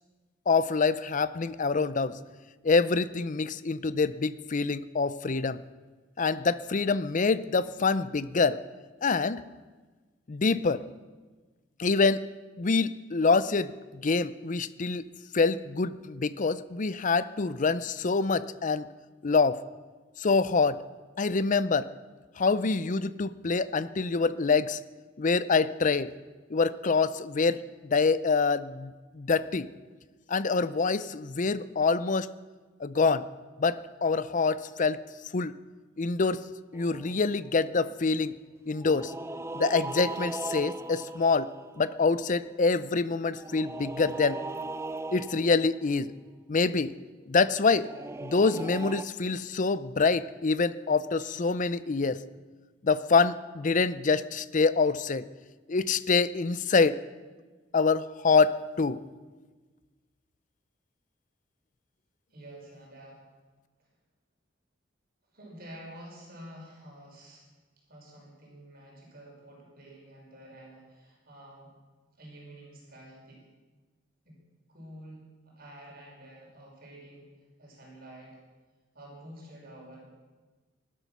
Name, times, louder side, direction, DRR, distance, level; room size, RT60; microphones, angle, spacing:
voice 1, 0.5-2.2 2.6-5.6 6.2-8.6 9.0-9.4 10.3-10.8 11.8-12.2 12.6-15.0 15.3-18.9 19.2-19.6 20.2-20.8 21.2-21.9 22.4-24.8 25.2-26.1 26.5-29.7 30.3-32.3 32.8-33.3 33.6-35.0 35.3-35.5 36.0-36.4 36.7-38.4 38.7-39.1 39.5-44.4 45.1-46.1 46.5-47.0 47.3-47.9 48.2-52.2 52.8-55.2 55.7-57.0 57.7-59.0, left 4 dB, 45° left, 16 dB, 0.6 m, -26 dB
sound 1, 36.7-37.6 38.8-42.3 43.3-45.8 47.7-49.0, right 2 dB, 15° right, 0.5 m, -38 dB
voice 2, 62.3-63.3 63.8-63.9 65.3-67.5 67.9-71.7 72.2-73.4 74.2-74.4 74.7-77.3 77.6-78.4 78.9-80.0, right 1 dB, 55° right, -2 dB, 5.4 m, -49 dB
19.5 x 12.5 x 6.1 m, 1.3 s
head